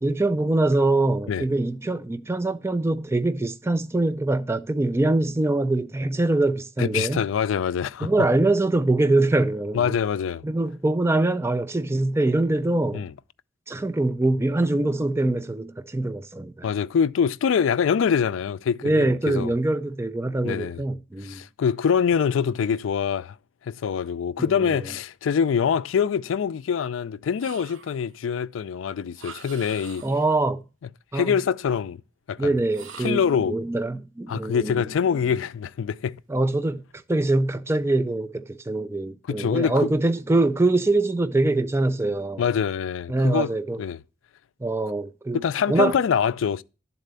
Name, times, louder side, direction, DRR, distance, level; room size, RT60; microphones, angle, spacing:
voice 1, 0.0-7.2 8.0-9.9 10.4-13.0 13.7-16.7 18.8-21.4 24.5-24.9 30.0-30.6 31.1-31.4 32.4-33.2 33.5-34.9 36.3-36.8 37.1-42.4 43.1-43.8 44.6-45.4 45.7-45.9, right 2 dB, 15° right, 0.4 m, -23 dB
voice 2, 6.8-8.1 9.7-10.4 12.9-13.1 16.6-19.5 20.4-20.8 21.2-23.4 23.6-30.0 31.1-32.0 32.3-32.6 33.0-33.6 34.3-36.2 39.4-39.9 42.4-43.5 43.8-44.0 45.3-46.6, left 7 dB, 85° left, 0.4 m, -24 dB
sound 1, 27.4-28.2 29.1-30.4 32.7-33.4, right 6 dB, 90° right, 0.8 m, -44 dB
10.5 x 4.1 x 6.7 m
head